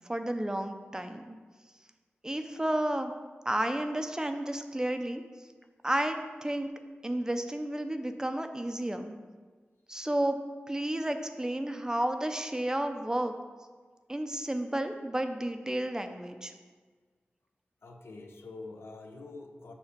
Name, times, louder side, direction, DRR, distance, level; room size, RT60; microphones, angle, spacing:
voice 1, 0.1-1.4 2.2-3.1 3.5-5.2 5.8-6.7 7.0-9.1 9.9-10.4 10.7-13.3 14.1-16.5, right 1 dB, 15° right, 7 dB, 0.6 m, -32 dB
voice 2, 17.8-19.7, left 3 dB, 80° left, 3 dB, 0.8 m, -45 dB
7.2 x 4.2 x 6.6 m, 1.4 s
wide cardioid pair, 80°, 4 cm